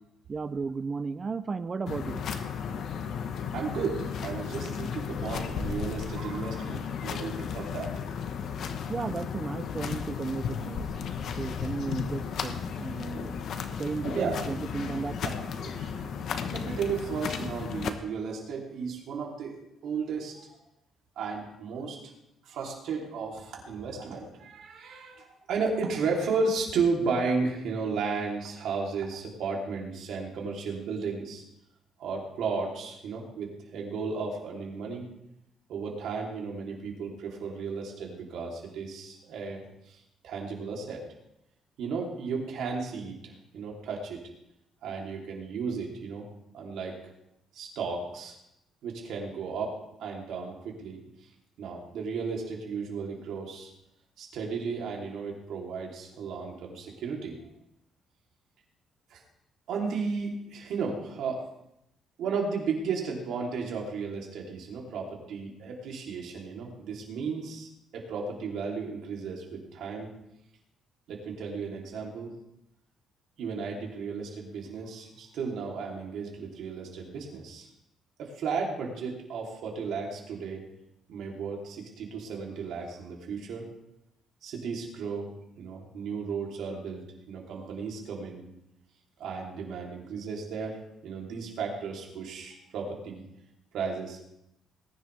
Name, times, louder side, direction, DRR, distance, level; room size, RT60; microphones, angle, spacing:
voice 1, 0.3-2.3 8.9-10.9 11.4-13.4 13.8-15.2, right 4 dB, 30° right, 14 dB, 0.5 m, -34 dB
sound 1, 1.9-17.9, left 7 dB, 60° left, 1.1 m, -34 dB
voice 2, 3.5-7.9 14.1-14.4 15.2-16.1 16.5-19.6 19.8-20.5 21.1-22.0 22.4-31.4 32.0-35.1 35.7-41.0 41.8-44.2 44.8-46.3 46.5-47.0 47.5-48.3 48.8-49.7 50.0-51.0 51.6-53.7 54.2-57.4 59.1-59.2 59.7-61.4 62.2-70.1 71.1-72.3 73.4-77.7 78.2-80.6 81.1-83.7 84.4-85.3 85.6-88.4 89.2-90.8 91.0-93.2 93.7-94.4, right 5 dB, 75° right, -1 dB, 3.3 m, -34 dB
20.5 x 10.5 x 3.5 m, 0.83 s
cardioid pair, 135°, 0 cm